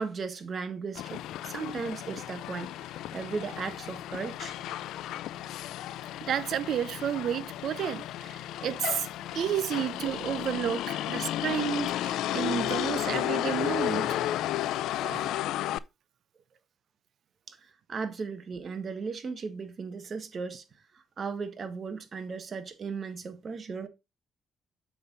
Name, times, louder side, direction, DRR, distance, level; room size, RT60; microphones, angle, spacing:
voice 1, 0.0-4.7 17.5-20.6 20.9-23.9, right 5 dB, 45° right, 1.5 m, -36 dB
Motor vehicle (road), 0.9-15.8, left 13 dB, 85° left, 0.3 m, -33 dB
voice 2, 6.3-9.1 9.3-14.3 15.0-15.3, right 10 dB, 65° right, 0.5 m, -31 dB
7.0 x 5.5 x 3.8 m
cardioid pair, 90°, 0 cm